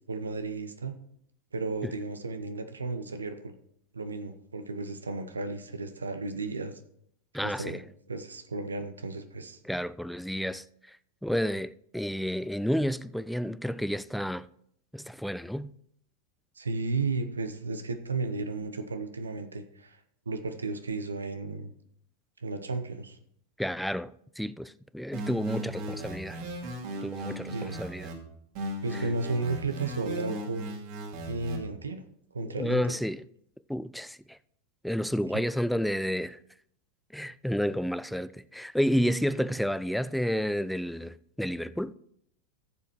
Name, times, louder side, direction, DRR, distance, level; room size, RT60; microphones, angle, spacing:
voice 1, 0.1-1.0 1.5-3.5 3.9-6.8 7.4-7.8 8.1-9.6 16.6-20.0 20.3-21.7 22.4-23.2 27.5-27.8 28.8-30.7 31.3-32.0 32.3-32.8, right 3 dB, 85° right, 0.8 m, -33 dB
voice 2, 7.3-7.8 9.6-10.6 11.2-14.5 14.9-15.7 23.6-26.4 27.0-28.1 32.5-33.2 33.7-34.4 34.8-36.4 37.1-41.9, equal, ahead, 0.4 m, -30 dB
sound 1, 25.1-28.1 28.5-31.6, right 1 dB, 55° right, 2.3 m, -37 dB
14.5 x 7.2 x 3.1 m
figure-of-eight pair, 90°, 0 cm